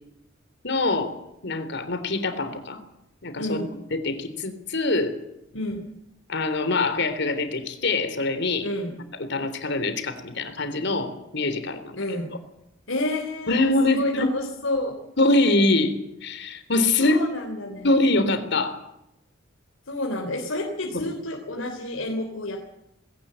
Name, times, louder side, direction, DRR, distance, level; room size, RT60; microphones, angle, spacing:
voice 1, 0.6-2.8 3.2-3.6 3.9-5.1 6.3-8.7 9.2-12.0 13.5-14.3 15.2-17.2 17.8-18.8 20.9-21.0, left 2 dB, 60° left, 10 dB, 3.5 m, -24 dB
voice 2, 3.4-3.7 5.5-5.9 8.6-8.9 12.0-12.3 12.9-15.0 17.0-17.9 19.9-22.6, left 1 dB, 75° left, 2 dB, 3.5 m, -29 dB
20.5 x 17.5 x 8.9 m, 0.84 s
head